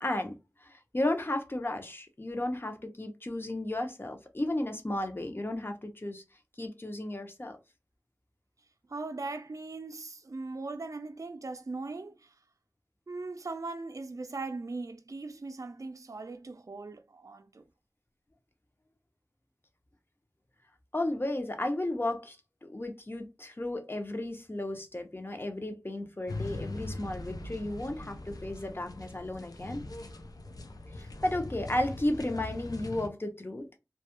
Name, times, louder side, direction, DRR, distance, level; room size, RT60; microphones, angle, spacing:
voice 1, 0.0-0.3 0.6-6.2 6.6-7.6 20.9-22.4 22.6-29.8 31.0-33.8, left 1 dB, 35° left, 0.6 m, -34 dB
voice 2, 8.9-12.3 13.1-17.6, right 3 dB, 60° right, 0.3 m, -39 dB
sound 1, 26.3-33.1, left 2 dB, 90° left, 0.3 m, -41 dB
2.2 x 2.0 x 2.8 m
wide cardioid pair, 45°, 6 cm